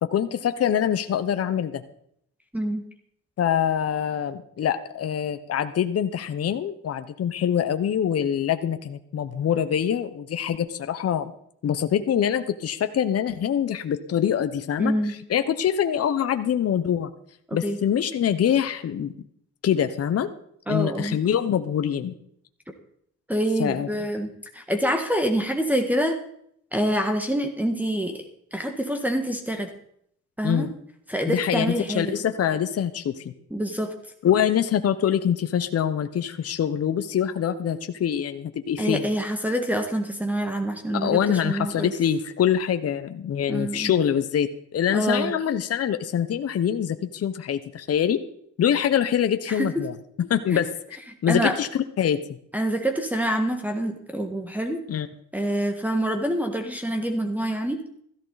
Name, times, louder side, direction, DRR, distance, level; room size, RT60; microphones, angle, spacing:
voice 1, 0.0-1.8 3.4-11.3 11.6-17.1 17.5-19.1 19.6-20.3 20.7-22.1 23.6-23.9 30.4-30.7 31.3-33.2 34.2-39.1 40.9-48.2 48.6-49.9 50.2-50.7 51.2-51.7 52.0-52.2 54.9-55.1, left 9 dB, 50° left, 9 dB, 1.0 m, -24 dB
voice 2, 14.8-15.1 17.5-17.8 20.7-21.2 23.3-26.2 26.7-28.2 28.5-29.7 30.4-30.7 31.1-32.1 33.5-33.9 38.8-41.9 43.5-43.9 44.9-45.3 49.5-49.8 50.5-50.6 51.3-51.5 52.5-54.8 55.3-57.8, equal, 5° right, 5 dB, 1.6 m, -26 dB
15.5 x 14.0 x 4.1 m, 0.68 s
cardioid pair, 90°, 30 cm